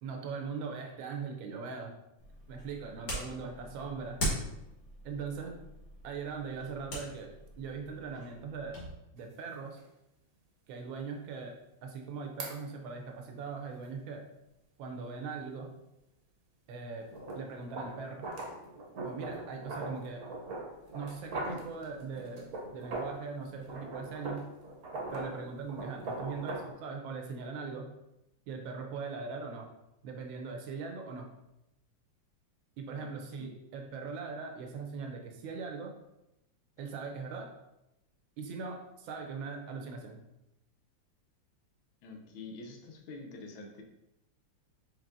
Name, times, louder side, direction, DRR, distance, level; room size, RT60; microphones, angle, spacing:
voice 1, 0.0-2.0 2.5-4.2 5.0-5.6 6.0-8.8 9.1-9.8 10.7-11.6 11.8-14.2 14.8-15.7 16.7-17.1 17.3-18.3 19.0-20.2 20.9-24.5 25.1-27.9 28.5-29.7 30.0-31.3 32.8-35.9 36.8-37.5 38.4-40.2, right 5 dB, 80° right, 3 dB, 1.5 m, -40 dB
sound 1, 2.2-8.9, equal, 60° left, 2.0 m, -41 dB
voice 2, 2.9-3.4 33.0-33.1 33.4-33.5 42.0-43.8, left 3 dB, 80° left, 3 dB, 1.5 m, -47 dB
sound 2, 9.2-9.3 9.8-9.9 12.4-12.6 17.1-23.3 23.6-26.7, right 2 dB, 60° right, 1.2 m, -41 dB
4.7 x 4.2 x 2.6 m, 0.90 s
omnidirectional pair, 2.1 m